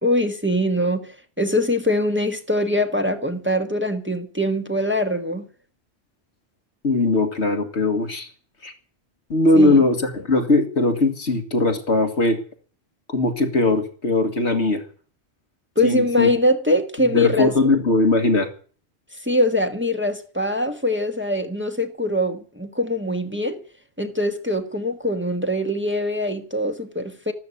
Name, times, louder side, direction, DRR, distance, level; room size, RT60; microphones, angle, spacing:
voice 1, 0.0-5.5 9.5-9.8 15.7-17.5 19.2-23.6 24.0-27.3, left 1 dB, 10° right, 1.4 m, -23 dB
voice 2, 6.8-8.3 8.6-8.7 9.3-12.4 13.1-14.8 15.8-16.3 17.1-18.5, left 2 dB, 80° left, 2.2 m, -19 dB
13.0 x 13.0 x 8.2 m
omnidirectional pair, 1.1 m